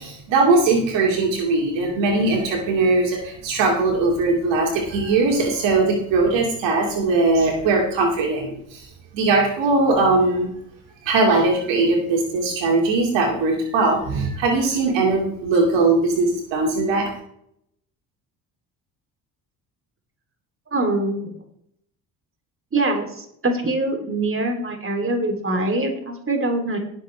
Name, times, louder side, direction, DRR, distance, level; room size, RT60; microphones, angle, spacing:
voice 1, 0.0-8.9 9.1-10.5 11.0-17.1, right 3 dB, 65° right, 1 dB, 2.5 m, -20 dB
voice 2, 20.7-21.3 22.7-26.8, right 2 dB, 25° right, 3 dB, 3.4 m, -23 dB
19.0 x 6.8 x 3.4 m, 0.71 s
hypercardioid pair, 50°, 48 cm